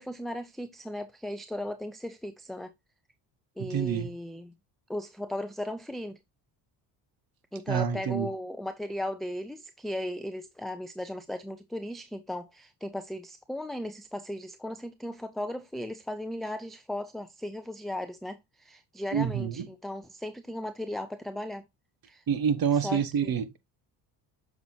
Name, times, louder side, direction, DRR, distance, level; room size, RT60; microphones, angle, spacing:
voice 1, 0.0-2.7 3.6-4.5 4.9-6.2 7.5-21.6 22.1-22.2 22.7-23.3, left 1 dB, ahead, 0.6 m, -36 dB
voice 2, 3.6-4.1 7.7-8.3 19.1-19.6 22.3-23.6, right 7 dB, 45° right, 1.3 m, -27 dB
6.9 x 6.1 x 2.8 m
supercardioid pair, 70°, 49 cm